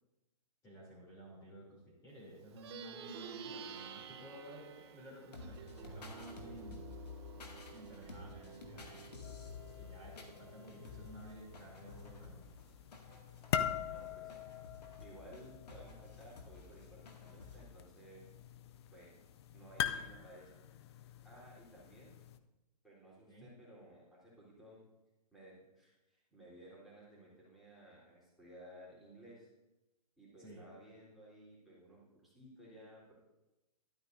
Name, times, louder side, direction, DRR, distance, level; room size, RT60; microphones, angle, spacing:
voice 1, 0.6-7.0 7.7-9.1 9.7-12.5 23.3-23.5 30.4-30.7, equal, 15° left, -6 dB, 3.0 m, -53 dB
Plucked string instrument, 2.4-12.1, right 7 dB, 40° right, 0.8 m, -52 dB
sound 1, 5.3-17.6, left 4 dB, 75° left, 2.1 m, -52 dB
sound 2, 9.2-22.4, left 9 dB, 40° left, 0.5 m, -44 dB
voice 2, 13.8-14.5 15.0-18.2 18.9-19.1 19.5-20.6 21.2-22.2 22.8-24.8 25.3-29.5 30.2-33.1, right 1 dB, ahead, -9 dB, 3.5 m, -57 dB
12.5 x 11.0 x 2.6 m, 1.0 s
hypercardioid pair, 145°, 21 cm